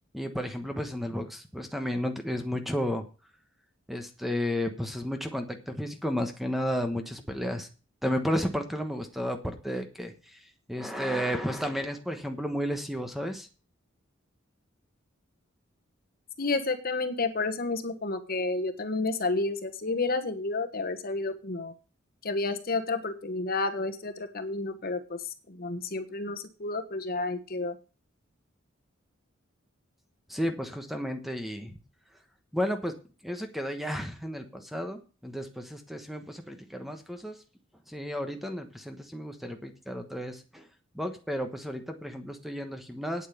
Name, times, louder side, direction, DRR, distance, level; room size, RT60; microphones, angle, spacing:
voice 1, 0.1-3.0 3.9-7.7 8.0-10.4 10.7-13.5 30.3-31.7 32.5-32.9 33.2-37.4 37.9-40.7 40.9-43.3, equal, ahead, 6 dB, 1.2 m, -32 dB
voice 2, 16.4-21.7 22.2-25.2 25.5-27.7, left 3 dB, 50° left, 8 dB, 1.3 m, -30 dB
9.3 x 8.3 x 7.0 m, 0.35 s
head